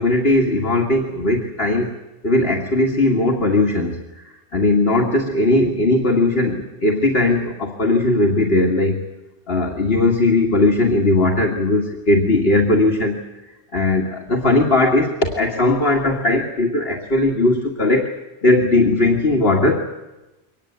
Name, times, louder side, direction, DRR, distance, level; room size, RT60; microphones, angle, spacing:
voice 1, 0.0-1.9 2.2-9.0 9.5-13.2 13.7-19.9, left 2 dB, 60° left, 1 dB, 2.3 m, -18 dB
24.0 x 19.5 x 8.1 m, 1.0 s
omnidirectional pair, 1.1 m